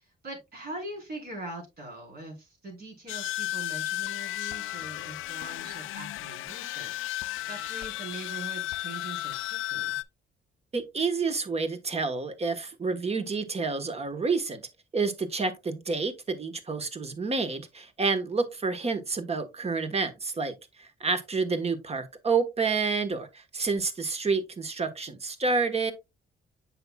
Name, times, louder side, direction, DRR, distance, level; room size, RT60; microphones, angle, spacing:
voice 1, 0.0-6.9 7.5-10.0, right 2 dB, 50° right, 4.4 m, -42 dB
sound 1, 3.1-10.0, left 15 dB, 85° left, 0.4 m, -34 dB
voice 2, 10.7-14.6 14.9-25.9, right 4 dB, 30° right, 1.3 m, -29 dB
7.8 x 6.0 x 2.3 m
cardioid pair, 90°, 20 cm